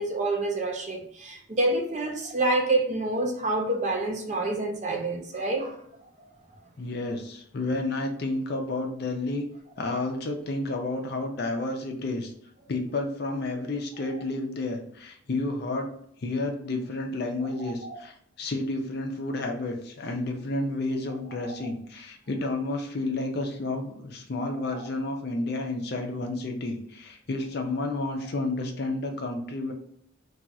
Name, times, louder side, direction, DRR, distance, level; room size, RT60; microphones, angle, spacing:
voice 1, 0.0-5.8 17.8-18.0 21.4-21.6 24.7-24.9, right 2 dB, 35° right, 1 dB, 0.5 m, -27 dB
voice 2, 6.8-9.5 9.8-12.3 12.7-15.9 16.2-29.7, left 2 dB, 50° left, 4 dB, 0.5 m, -31 dB
2.4 x 2.3 x 4.0 m, 0.67 s
head